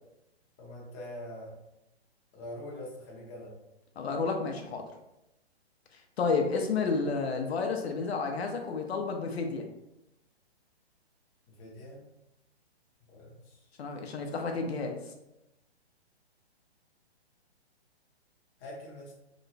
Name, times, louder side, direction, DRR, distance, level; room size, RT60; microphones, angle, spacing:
voice 1, 0.6-1.5 2.3-3.5 11.5-12.0 13.1-13.6 18.6-19.1, left 1 dB, 20° left, -4 dB, 0.6 m, -44 dB
voice 2, 4.0-4.8 6.2-9.7 13.8-15.0, left 4 dB, 70° left, 3 dB, 0.6 m, -31 dB
3.0 x 2.1 x 3.9 m, 0.91 s
hypercardioid pair, 155°, 33 cm